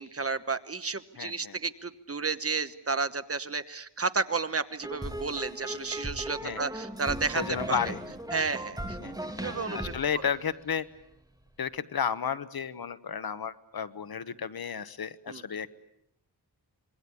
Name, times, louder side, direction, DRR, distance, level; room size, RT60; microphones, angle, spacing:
voice 1, 0.0-7.8 8.3-9.0 9.4-9.9 15.3-15.4, right 4 dB, 35° right, 12 dB, 1.2 m, -32 dB
voice 2, 1.2-1.6 6.4-6.6 7.3-8.0 9.0-10.9 11.6-15.7, left 7 dB, 60° left, 13 dB, 1.2 m, -33 dB
sound 1, 4.8-11.1, right 1 dB, 10° right, 2.8 m, -38 dB
26.0 x 23.0 x 8.5 m, 0.74 s
wide cardioid pair, 120°, 40 cm